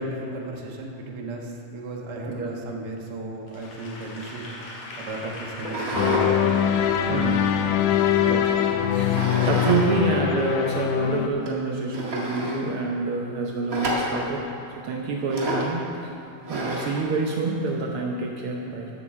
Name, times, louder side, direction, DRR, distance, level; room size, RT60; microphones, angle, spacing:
voice 1, 0.0-4.5 5.0-6.3 7.1-7.2, right 2 dB, 55° right, 0 dB, 1.1 m, -35 dB
Applause / Crowd, 3.5-9.7, left 1 dB, 50° left, 2.7 m, -41 dB
sound 1, 5.6-6.3 6.7-8.1 9.1-9.9 10.2-10.3 10.9-11.0 11.5-11.6 11.9-12.6 13.7-14.3 15.3-15.7 16.5-17.0, right 1 dB, 35° right, 1.5 m, -29 dB
sound 2, 5.9-11.3, left 9 dB, 80° left, 2.0 m, -22 dB
voice 2, 8.2-8.6 8.9-14.4 14.8-15.8 16.5-18.9, right 3 dB, 90° right, 0 dB, 1.2 m, -27 dB
11.5 x 7.7 x 7.5 m, 2.7 s
omnidirectional pair, 3.7 m